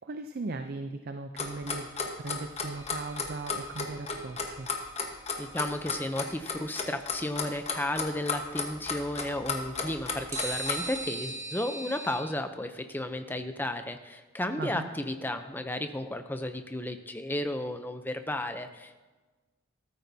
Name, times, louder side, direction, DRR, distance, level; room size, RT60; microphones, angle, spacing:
voice 1, 0.0-1.9 2.2-4.7 14.6-14.9, right 3 dB, 45° right, 7 dB, 0.4 m, -38 dB
Clock, 1.4-11.0, left 5 dB, 30° left, 1.2 m, -33 dB
sound 1, 2.7-3.9 10.3-12.2, right 2 dB, 15° right, 1.2 m, -39 dB
voice 2, 5.4-18.9, left 1 dB, 10° left, 7 dB, 0.6 m, -33 dB
13.5 x 13.5 x 2.7 m, 1.3 s
head